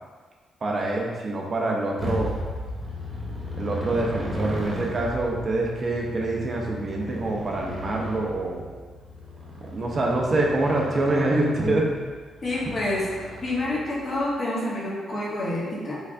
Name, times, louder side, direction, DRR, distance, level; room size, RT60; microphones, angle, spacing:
voice 1, 0.6-2.4 3.6-8.7 9.6-11.9, right 2 dB, 40° right, -1 dB, 0.6 m, -25 dB
Motorcycle, 2.0-14.1, left 1 dB, 15° right, 1.0 m, -35 dB
voice 2, 12.4-13.1 13.4-16.0, left 1 dB, 40° left, -5 dB, 1.0 m, -28 dB
4.3 x 2.5 x 2.5 m, 1.4 s
cardioid pair, 90°, 0 cm